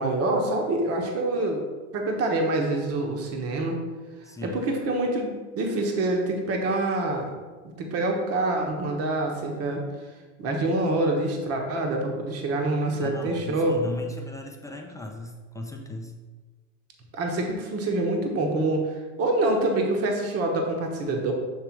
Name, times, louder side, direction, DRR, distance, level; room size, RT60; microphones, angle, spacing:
voice 1, 0.0-1.6 1.9-3.8 4.4-7.3 7.8-9.8 10.4-13.7 17.1-21.3, right 2 dB, 40° right, 2 dB, 1.2 m, -26 dB
voice 2, 4.2-4.6 13.0-16.1, left 1 dB, 10° left, 2 dB, 0.5 m, -37 dB
7.4 x 3.3 x 4.6 m, 1.3 s
supercardioid pair, 115°, 38 cm